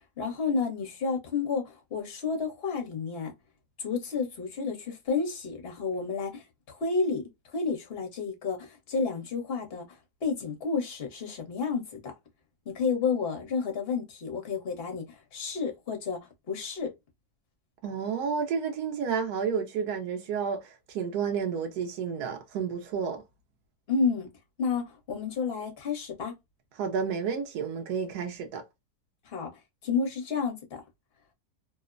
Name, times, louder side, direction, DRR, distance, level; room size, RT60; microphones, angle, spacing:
voice 1, 0.2-3.3 3.8-7.2 7.5-12.1 12.7-16.2 16.5-16.9 23.9-24.3 24.6-26.3 29.2-29.5 29.8-30.8, left 5 dB, 45° left, 1.0 m, -31 dB
voice 2, 17.8-23.2 26.8-28.6, right 6 dB, 85° right, 1.1 m, -31 dB
3.0 x 2.0 x 2.3 m
omnidirectional pair, 1.6 m